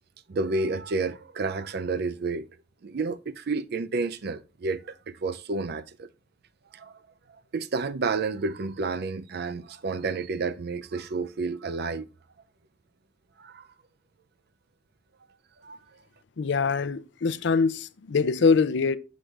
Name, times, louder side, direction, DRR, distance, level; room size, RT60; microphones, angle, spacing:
voice 1, 0.3-2.5 2.8-6.1 6.7-6.9 7.5-12.1 13.4-13.6 15.6-15.8, right 3 dB, 60° right, 0.5 m, -30 dB
voice 2, 16.4-19.0, left 5 dB, 65° left, 0.5 m, -23 dB
6.4 x 6.2 x 3.2 m
head